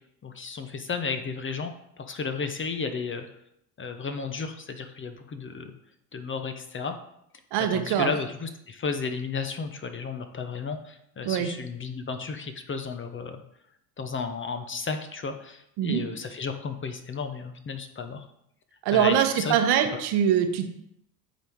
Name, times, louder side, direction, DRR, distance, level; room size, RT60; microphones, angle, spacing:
voice 1, 0.2-3.3 3.8-5.7 6.1-6.9 7.7-13.4 14.0-18.2 18.9-19.6 19.9-20.0, left 5 dB, 25° left, 8 dB, 0.8 m, -33 dB
voice 2, 7.5-8.1 11.2-11.5 15.8-16.0 18.8-20.7, right 9 dB, 55° right, 6 dB, 1.1 m, -23 dB
9.1 x 3.5 x 4.6 m, 0.75 s
hypercardioid pair, 80°, 46 cm